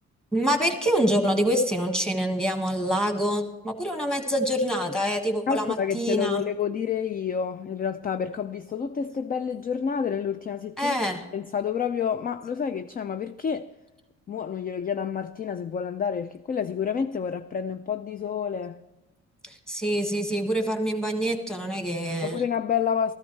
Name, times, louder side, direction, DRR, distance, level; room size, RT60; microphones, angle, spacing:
voice 1, 0.3-6.4 10.8-11.2 19.4-22.4, equal, ahead, 1.5 m, -26 dB
voice 2, 5.5-11.0 11.3-13.7 14.3-18.8 22.2-23.1, left 7 dB, 30° left, 0.4 m, -29 dB
14.0 x 13.0 x 3.2 m
cardioid pair, 90°, 30 cm